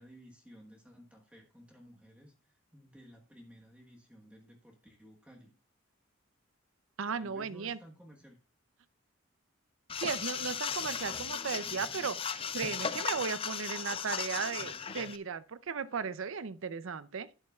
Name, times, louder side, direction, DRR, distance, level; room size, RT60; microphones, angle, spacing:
voice 1, 0.0-5.5 7.1-8.4, equal, 5° right, 1.2 m, -55 dB
voice 2, 7.0-7.8 10.0-17.3, right 6 dB, 70° right, 0.6 m, -36 dB
sound 1, 9.9-15.2, left 7 dB, 25° left, 0.4 m, -36 dB
11.0 x 9.6 x 2.4 m
head